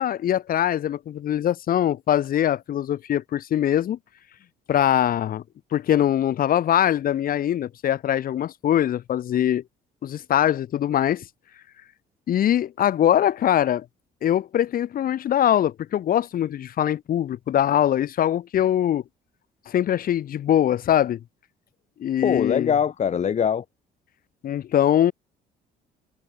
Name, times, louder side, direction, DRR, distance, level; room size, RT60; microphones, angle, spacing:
voice 1, 0.0-4.0 4.7-5.4 5.7-9.6 10.0-11.2 12.3-13.8 14.2-19.0 19.7-21.2 22.0-22.7 24.4-25.1, left 11 dB, 60° left, 6.2 m, -22 dB
voice 2, 22.2-23.6, left 7 dB, 45° left, 4.7 m, -22 dB
cardioid pair, 110°, 17 cm